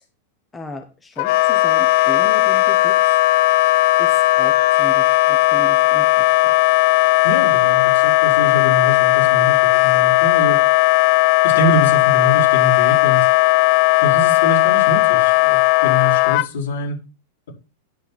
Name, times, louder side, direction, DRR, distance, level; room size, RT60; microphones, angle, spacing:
voice 1, 0.5-2.9 4.0-6.5, left 1 dB, 10° left, 1.0 m, -35 dB
Wind instrument woodwind instrument, 1.2-16.5, left 18 dB, 45° left, 0.4 m, -16 dB
voice 2, 7.2-10.6 11.4-13.3 14.0-17.0, left 1 dB, 80° left, 5.1 m, -24 dB
10.0 x 4.5 x 6.0 m
supercardioid pair, 165°, 0 cm